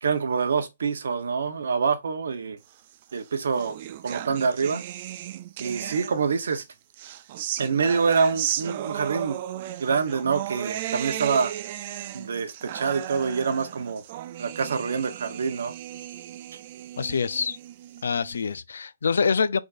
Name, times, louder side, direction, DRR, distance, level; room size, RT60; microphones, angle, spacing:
voice 1, 0.0-2.6 3.1-3.8 4.0-4.8 5.6-6.6 7.6-9.4 9.8-11.5 12.1-14.0 14.4-15.7, right 5 dB, 70° right, 0.9 m, -26 dB
sound 1, 3.0-6.5 6.9-18.4, right 12 dB, 30° right, 0.4 m, -35 dB
voice 2, 17.0-17.6 18.0-19.6, left 5 dB, 90° left, 0.5 m, -25 dB
5.0 x 4.0 x 2.5 m
hypercardioid pair, 170°, 0 cm